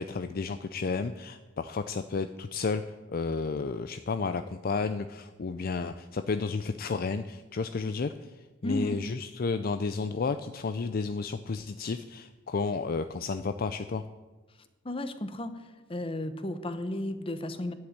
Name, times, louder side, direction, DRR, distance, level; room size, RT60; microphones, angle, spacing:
voice 1, 0.0-14.0, left 4 dB, 45° left, 10 dB, 0.4 m, -32 dB
voice 2, 8.6-9.0 14.8-15.6 15.9-17.7, left 1 dB, 25° left, 10 dB, 0.9 m, -33 dB
10.5 x 8.0 x 9.7 m, 1.2 s
head